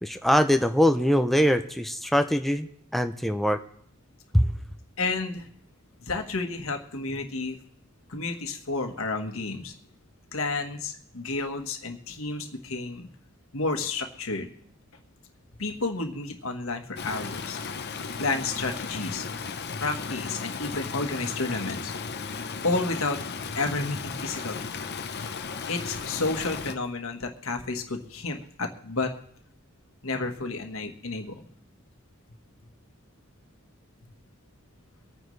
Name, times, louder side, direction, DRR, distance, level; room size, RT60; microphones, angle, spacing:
voice 1, 0.0-3.6 4.3-4.5, equal, ahead, 7 dB, 0.5 m, -23 dB
voice 2, 5.0-5.5 6.0-7.6 8.1-9.7 10.3-13.1 13.5-14.5 15.6-17.6 18.2-19.3 19.8-21.9 22.6-23.2 23.5-24.7 25.7-29.1 30.0-31.5, left 3 dB, 80° left, 5 dB, 1.5 m, -31 dB
Stream, 17.0-26.7, left 5 dB, 55° left, 0.8 m, -35 dB
24.0 x 9.2 x 3.2 m, 0.67 s
head